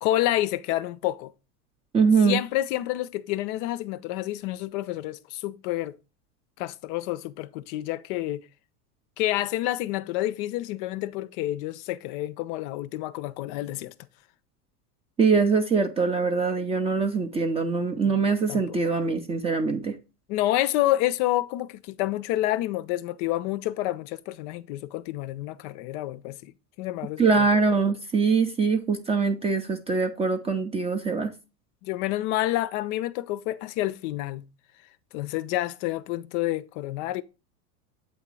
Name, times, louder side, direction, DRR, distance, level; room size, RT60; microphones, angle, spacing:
voice 1, 0.0-1.3 2.2-5.9 6.6-8.5 9.2-13.9 18.0-18.2 18.5-18.8 20.3-26.5 26.8-27.6 31.8-34.4 35.1-37.2, left 15 dB, 50° left, 0.5 m, -28 dB
voice 2, 1.9-2.4 15.2-19.9 27.2-31.3, right 4 dB, 15° right, 0.4 m, -23 dB
8.2 x 2.9 x 4.7 m
hypercardioid pair, 110°, 47 cm